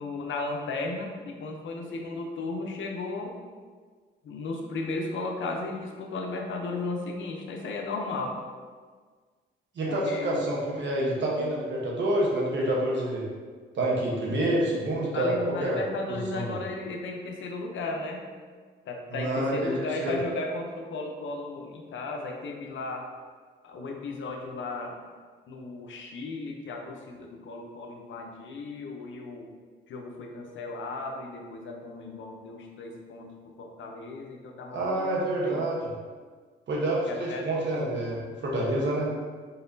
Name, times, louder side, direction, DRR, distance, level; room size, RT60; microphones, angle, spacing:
voice 1, 0.0-3.4 4.2-8.4 9.9-10.5 14.3-14.4 15.1-18.2 18.9-23.1 23.6-25.0 25.5-29.5 29.9-33.3 33.6-35.6 37.0-37.5, left 3 dB, 70° left, 1 dB, 0.7 m, -35 dB
voice 2, 9.7-13.3 13.7-15.8 16.1-16.6 19.1-20.2 34.7-35.9 36.7-39.1, right 1 dB, 60° right, -3 dB, 1.1 m, -28 dB
4.0 x 3.9 x 2.7 m, 1.5 s
cardioid pair, 80°, 21 cm